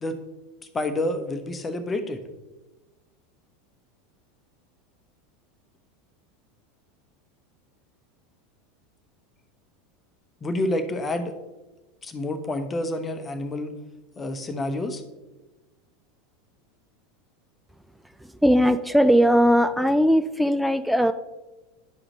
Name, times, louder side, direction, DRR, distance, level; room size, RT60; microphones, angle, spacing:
voice 1, 0.7-2.2 10.4-11.3 12.0-13.7 14.2-15.0, left 1 dB, 20° left, 8 dB, 0.9 m, -28 dB
voice 2, 18.2-21.1, equal, ahead, 10 dB, 0.3 m, -19 dB
11.5 x 4.9 x 3.2 m, 1.1 s
figure-of-eight pair, 80°, 0 cm